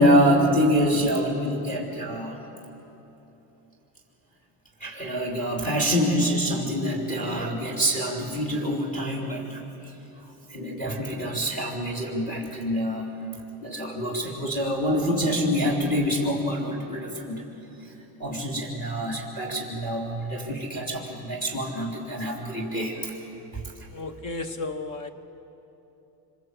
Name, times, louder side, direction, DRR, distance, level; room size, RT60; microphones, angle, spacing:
voice 1, 0.0-2.4 4.8-9.9 10.5-13.1 13.6-17.4 17.8-17.9 18.2-23.2 23.5-23.6, equal, 20° left, -1 dB, 3.3 m, -26 dB
voice 2, 23.9-25.1, left 3 dB, 45° left, 10 dB, 1.5 m, -33 dB
25.5 x 23.0 x 8.3 m, 3.0 s
cardioid pair, 150°, 44 cm